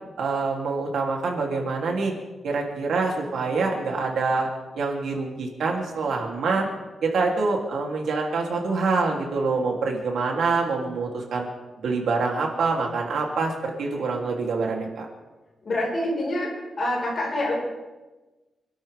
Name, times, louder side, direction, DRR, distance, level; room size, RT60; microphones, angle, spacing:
voice 1, 0.2-2.1 2.4-4.5 4.7-6.7 7.0-11.5 11.8-15.0, right 4 dB, 80° right, 0 dB, 3.3 m, -25 dB
voice 2, 15.7-17.5, left 1 dB, 40° left, -2 dB, 5.4 m, -26 dB
27.5 x 12.5 x 3.7 m, 1.1 s
wide cardioid pair, 175°, 0 cm